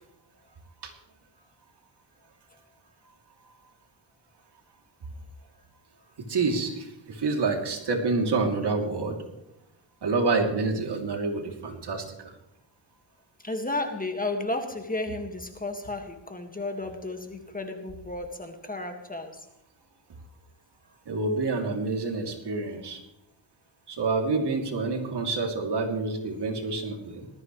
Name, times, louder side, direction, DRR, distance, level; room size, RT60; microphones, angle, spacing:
voice 1, 6.2-9.2 10.0-12.3 21.1-23.0 23.9-27.2, right 3 dB, 60° right, 3 dB, 3.0 m, -28 dB
voice 2, 13.4-19.4, left 2 dB, 20° left, 5 dB, 1.9 m, -33 dB
19.0 x 14.0 x 3.2 m, 0.86 s
cardioid pair, 85°, 47 cm